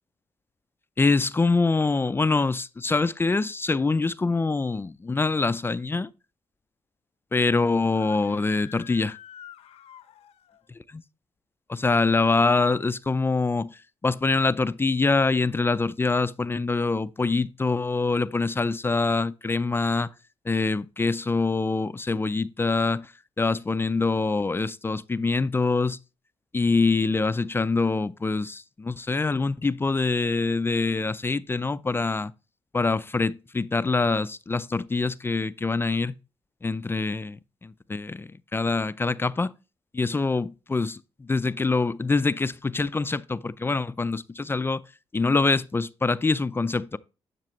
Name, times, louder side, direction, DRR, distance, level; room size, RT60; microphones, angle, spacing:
voice 1, 1.0-6.1 7.3-9.2 11.7-20.1 20.5-23.1 23.4-26.0 26.5-32.3 32.7-36.1 36.6-39.5 39.9-44.8 45.1-47.0, left 3 dB, 20° left, 0.4 m, -25 dB
Screaming, 7.8-10.6, left 11 dB, 80° left, 0.8 m, -48 dB
10.5 x 6.0 x 3.0 m
cardioid pair, 80°, 10 cm